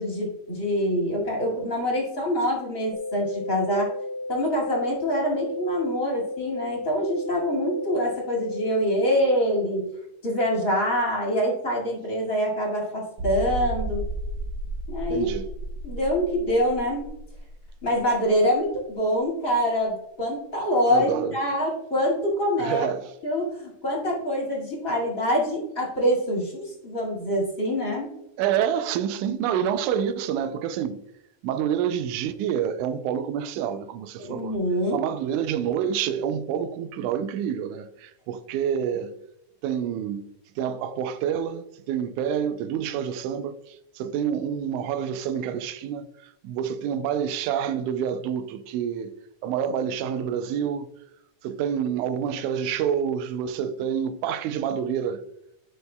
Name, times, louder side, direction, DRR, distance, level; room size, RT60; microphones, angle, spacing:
voice 1, 0.0-3.9 4.3-9.9 10.2-14.0 14.9-15.3 15.8-17.1 17.8-22.9 23.2-28.1 34.2-35.0, equal, 30° left, 2.0 m, -25 dB
sound 1, 2.9-8.9, left 2 dB, 75° left, 1.8 m, -34 dB
sound 2, 13.2-18.6 18.9-19.0 19.5-19.6, right 2 dB, 65° right, 1.1 m, -33 dB
voice 2, 15.1-15.5 20.9-21.3 22.6-23.1 28.4-31.0 31.4-34.6 34.9-39.2 39.6-40.3 40.6-49.1 49.4-50.9 51.4-55.2, right 8 dB, 85° right, 2.0 m, -28 dB
11.0 x 4.7 x 2.2 m
omnidirectional pair, 3.5 m